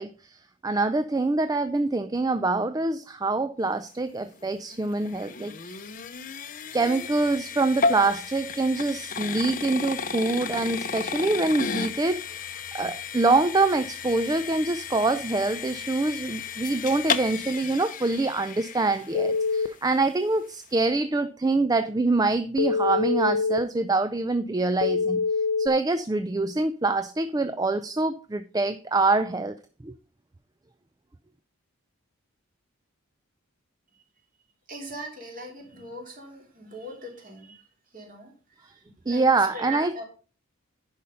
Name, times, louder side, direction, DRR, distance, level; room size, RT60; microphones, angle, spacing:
voice 1, 0.0-5.8 6.7-12.5 12.7-25.2 25.6-29.6 29.8-29.9 39.1-40.0, right 3 dB, 15° right, 11 dB, 0.3 m, -25 dB
sound 1, 4.3-19.5, left 5 dB, 40° left, 0.7 m, -33 dB
Telephone, 19.1-19.7 22.6-23.6 24.8-25.7, left 5 dB, 70° left, 0.5 m, -24 dB
voice 2, 34.7-37.6 37.9-39.3 39.5-40.0, right 1 dB, 40° right, 1 dB, 3.2 m, -40 dB
10.5 x 5.5 x 5.4 m, 0.37 s
head